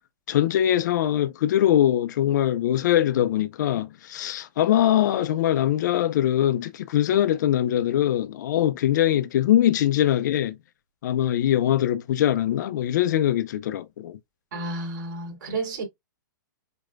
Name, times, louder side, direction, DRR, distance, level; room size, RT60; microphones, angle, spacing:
voice 1, 0.3-10.6 11.0-14.2, left 11 dB, 60° left, 0.5 m, -22 dB
voice 2, 14.5-15.8, right 2 dB, 65° right, 2.6 m, -31 dB
4.8 x 4.3 x 2.4 m
hypercardioid pair, 135°, 11 cm